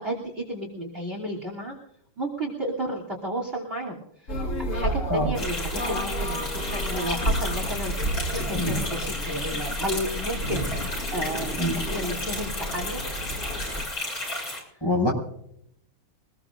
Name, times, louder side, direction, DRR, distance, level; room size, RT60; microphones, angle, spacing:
voice 1, 0.0-1.7 2.2-4.4 4.7-13.0 14.7-14.8, right 1 dB, 25° right, 0 dB, 3.2 m, -32 dB
sound 1, 4.3-13.9, equal, 40° left, 1.8 m, -31 dB
sound 2, 5.4-14.6, left 1 dB, 55° left, 7.6 m, -33 dB
voice 2, 14.8-15.1, left 1 dB, 10° left, -2 dB, 6.5 m, -24 dB
24.0 x 20.5 x 2.6 m, 0.72 s
omnidirectional pair, 2.4 m